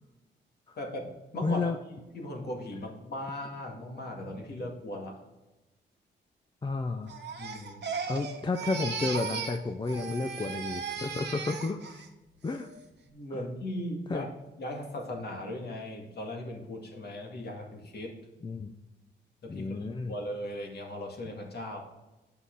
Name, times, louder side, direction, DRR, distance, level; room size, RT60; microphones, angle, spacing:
voice 1, 0.8-1.7 2.1-5.2 7.4-7.9 13.0-14.3 14.6-18.2 19.4-21.8, left 1 dB, 55° left, 1 dB, 2.0 m, -38 dB
voice 2, 1.4-1.8 6.6-7.2 8.1-12.1 12.4-12.7 13.3-13.4 14.1-14.3 18.4-18.7 19.5-20.1, left 3 dB, 25° left, 7 dB, 0.5 m, -32 dB
Crying sobbing, 7.1-9.6 9.9-12.1 12.5-12.9, right 5 dB, 65° right, 1.2 m, -37 dB
8.3 x 5.7 x 3.9 m, 1.1 s
cardioid pair, 85°, 19 cm